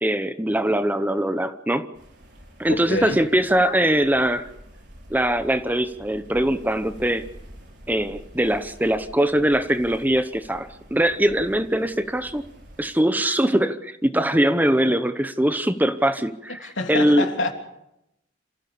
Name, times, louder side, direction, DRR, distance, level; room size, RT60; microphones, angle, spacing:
voice 1, 0.0-1.9 2.6-4.5 5.1-7.2 7.9-12.4 12.8-17.3, right 1 dB, 10° right, 0.9 m, -22 dB
sound 1, 1.9-12.8, equal, 65° right, 5.3 m, -47 dB
voice 2, 2.7-3.2 16.6-17.5, left 2 dB, 85° left, 3.3 m, -27 dB
27.0 x 16.0 x 7.0 m
head